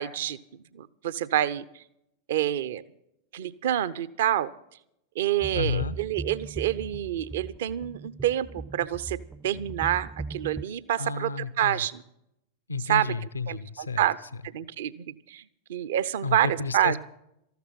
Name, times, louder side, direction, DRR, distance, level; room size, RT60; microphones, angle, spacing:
voice 1, 0.0-1.8 2.3-2.8 3.3-4.5 5.2-9.2 9.4-12.0 12.8-13.1 13.5-14.2 14.5-15.4 15.7-17.0, right 12 dB, 55° right, 17 dB, 0.6 m, -27 dB
sound 1, 5.4-10.6, right 3 dB, 10° right, 0.4 m, -39 dB
voice 2, 5.5-5.9 11.0-11.8 12.7-14.0 16.2-17.0, left 4 dB, 75° left, 16 dB, 0.6 m, -31 dB
14.0 x 12.5 x 5.8 m, 0.78 s
figure-of-eight pair, 90°, 0 cm